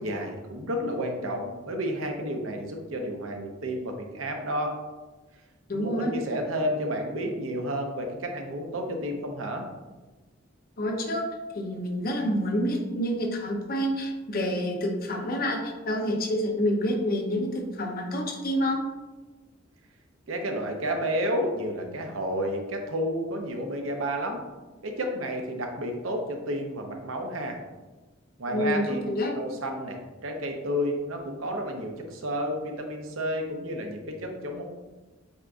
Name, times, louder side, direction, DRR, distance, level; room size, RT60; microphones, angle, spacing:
voice 1, 0.0-4.8 5.7-9.7 20.3-24.4 24.8-27.6 28.4-29.0 29.3-34.6, equal, 85° right, 3 dB, 0.7 m, -31 dB
voice 2, 5.7-6.1 10.8-11.3 11.5-18.8 28.5-29.3, equal, 50° left, 2 dB, 0.7 m, -28 dB
7.8 x 2.6 x 2.3 m, 1.2 s
head